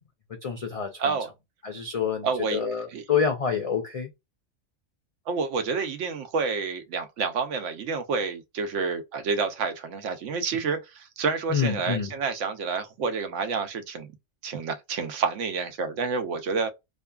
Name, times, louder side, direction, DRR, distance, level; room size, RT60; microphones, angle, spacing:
voice 1, 0.4-1.1 1.6-4.1 11.5-12.1, left 6 dB, 65° left, 0.3 m, -27 dB
voice 2, 1.0-1.3 2.2-3.0 5.3-14.1 14.4-16.7, right 5 dB, 75° right, 0.9 m, -29 dB
2.7 x 2.3 x 2.3 m
omnidirectional pair, 1.3 m